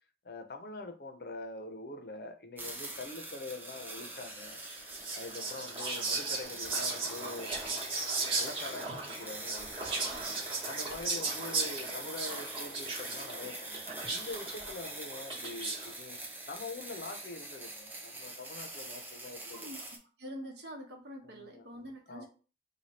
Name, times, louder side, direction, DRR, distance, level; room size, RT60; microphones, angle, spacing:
voice 1, 0.2-4.6 5.1-7.6 8.3-10.1 10.6-19.7 21.2-21.7 22.1-22.3, left 2 dB, 60° left, 0.6 m, -44 dB
sound 1, 2.6-20.0, right 2 dB, 10° right, 0.5 m, -44 dB
Whispering, 4.6-16.0, right 3 dB, 30° right, 0.9 m, -37 dB
voice 2, 19.4-19.9 20.2-22.3, equal, 75° right, 1.0 m, -45 dB
3.2 x 2.2 x 4.1 m
head